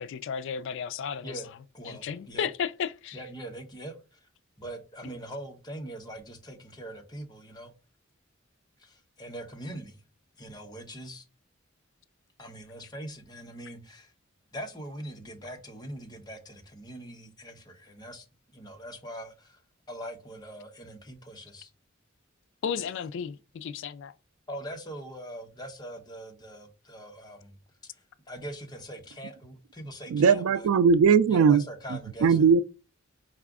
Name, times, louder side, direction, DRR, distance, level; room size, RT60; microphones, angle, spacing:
voice 1, 0.0-1.4 1.9-3.2 22.6-24.1, left 7 dB, 65° left, 0.3 m, -33 dB
voice 2, 1.7-2.5 3.1-4.3 4.6-7.7 8.8-10.0 10.4-11.2 12.4-14.1 14.5-18.3 18.5-19.6 19.9-21.7 24.5-27.6 27.9-30.7 31.3-32.5, right 1 dB, 20° left, 0.8 m, -42 dB
voice 3, 30.1-31.6 32.2-32.6, right 6 dB, 85° right, 0.3 m, -19 dB
4.8 x 2.4 x 3.5 m
head